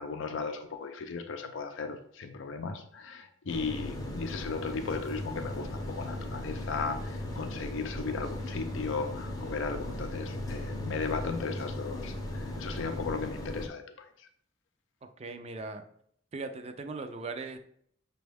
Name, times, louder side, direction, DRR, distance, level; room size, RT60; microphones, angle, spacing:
voice 1, 0.0-13.8, left 4 dB, 80° left, 6 dB, 0.4 m, -36 dB
sound 1, 3.5-13.7, left 1 dB, 20° left, 0.6 m, -37 dB
voice 2, 15.2-15.8 16.3-17.6, right 3 dB, 35° right, 7 dB, 0.4 m, -38 dB
6.0 x 2.2 x 3.3 m, 0.67 s
head